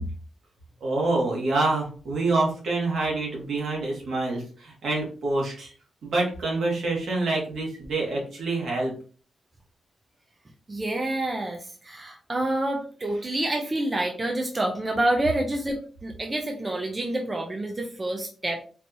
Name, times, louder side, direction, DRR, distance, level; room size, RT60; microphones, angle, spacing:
voice 1, 0.8-5.7 6.0-8.9, right 2 dB, 70° right, -2 dB, 1.6 m, -26 dB
voice 2, 10.7-18.6, right 1 dB, 20° right, 2 dB, 0.5 m, -28 dB
4.5 x 2.8 x 2.8 m, 0.40 s
wide cardioid pair, 165°, 0 cm